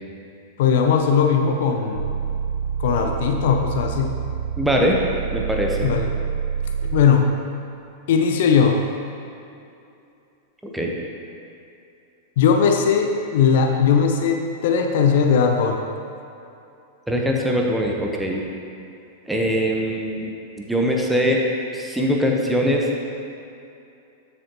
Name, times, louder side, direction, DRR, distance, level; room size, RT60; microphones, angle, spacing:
voice 1, 0.6-2.1 2.8-4.2 5.8-6.1 6.9-7.3 8.1-8.8 12.4-15.8, left 6 dB, 55° left, 4 dB, 0.7 m, -18 dB
sound 1, 1.9-7.2, right 7 dB, 70° right, 0.3 m, -27 dB
voice 2, 4.6-5.0 5.3-5.9 10.7-10.9 17.1-18.4 19.3-20.3 20.6-21.4 21.7-22.8, equal, 5° right, -1 dB, 1.1 m, -22 dB
12.5 x 6.5 x 3.0 m, 2.7 s
figure-of-eight pair, 95°, 0 cm